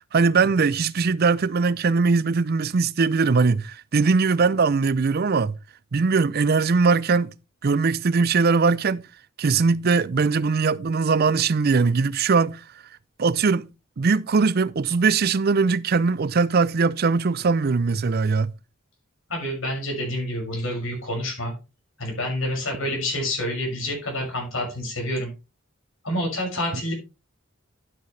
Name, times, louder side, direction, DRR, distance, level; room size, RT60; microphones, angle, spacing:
voice 1, 0.1-5.6 5.9-7.3 7.6-9.0 9.4-12.6 13.2-13.7 14.0-18.5, right 4 dB, 50° right, 0.5 m, -21 dB
voice 2, 19.3-21.5 22.0-25.3 26.0-26.9, left 1 dB, 80° left, 6.4 m, -28 dB
12.0 x 7.8 x 3.3 m
head